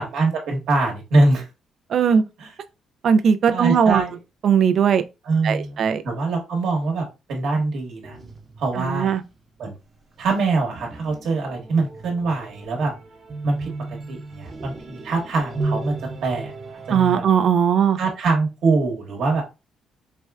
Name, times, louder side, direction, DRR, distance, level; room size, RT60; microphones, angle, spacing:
voice 1, 0.0-1.5 2.4-2.5 3.5-4.2 5.2-5.8 6.0-8.2 8.6-9.2 9.6-9.7 10.2-12.9 13.4-13.7 14.1-16.0 16.2-16.5 16.9-17.2 18.0-19.4, right 3 dB, 75° right, 1.1 m, -23 dB
voice 2, 1.9-2.2 3.0-4.0 4.4-5.0 5.4-6.0 8.8-9.2 16.9-18.0, right 7 dB, 60° right, 0.3 m, -18 dB
sound 1, 8.0-17.0, right 3 dB, 35° right, 0.8 m, -35 dB
4.3 x 2.2 x 2.3 m
cardioid pair, 90°, 0 cm